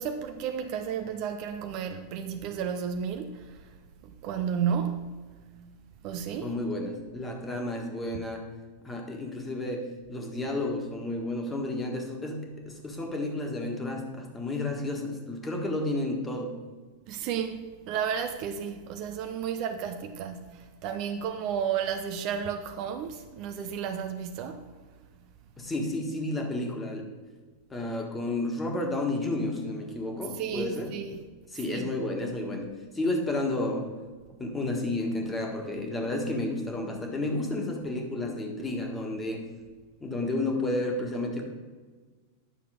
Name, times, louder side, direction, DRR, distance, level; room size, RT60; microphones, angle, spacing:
voice 1, 0.0-3.6 4.0-5.2 6.0-6.5 17.1-24.7 30.4-31.2 31.7-31.9, right 7 dB, 40° right, 0.7 m, -32 dB
voice 2, 6.4-8.5 8.8-16.6 25.6-27.1 27.7-31.0 31.5-33.9 34.4-39.5 40.0-41.4, left 2 dB, 15° left, 1.7 m, -31 dB
10.0 x 6.7 x 5.0 m
figure-of-eight pair, 90°, 0 cm